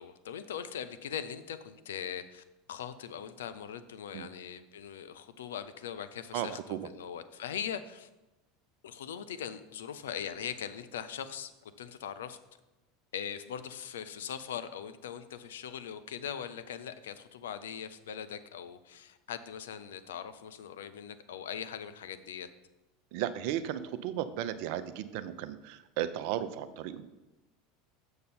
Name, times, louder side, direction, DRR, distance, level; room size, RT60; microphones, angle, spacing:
voice 1, 0.0-6.6 6.9-8.1 8.8-12.4 13.1-22.5, left 8 dB, 75° left, 12 dB, 0.5 m, -41 dB
voice 2, 6.3-6.8 23.1-27.1, right 11 dB, 60° right, 13 dB, 0.5 m, -35 dB
6.7 x 6.6 x 4.3 m, 1.0 s
hypercardioid pair, 80°, 0 cm